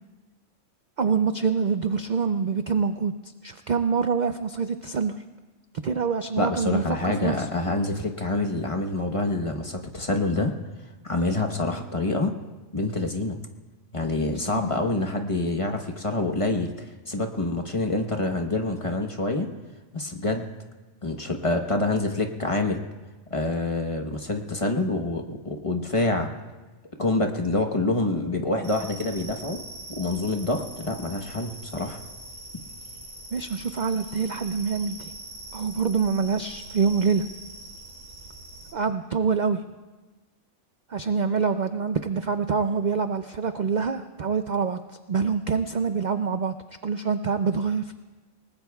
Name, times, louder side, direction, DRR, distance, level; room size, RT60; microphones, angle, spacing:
voice 1, 1.0-3.1 3.4-5.2 5.8-7.3 14.3-14.7 33.3-35.1 35.5-37.2 38.7-39.6 40.9-44.8 45.1-46.5 46.8-47.9, right 5 dB, 60° right, 8 dB, 0.4 m, -25 dB
voice 2, 6.4-10.5 11.0-12.3 12.7-13.4 13.9-16.7 17.1-19.5 19.9-20.5 21.0-22.8 23.3-26.3 27.0-29.6 29.9-32.0 32.5-32.6, left 2 dB, 25° left, 4 dB, 1.1 m, -26 dB
sound 1, 28.6-38.7, right 2 dB, 85° right, 4.0 m, -42 dB
28.5 x 19.0 x 2.3 m, 1.2 s
omnidirectional pair, 1.4 m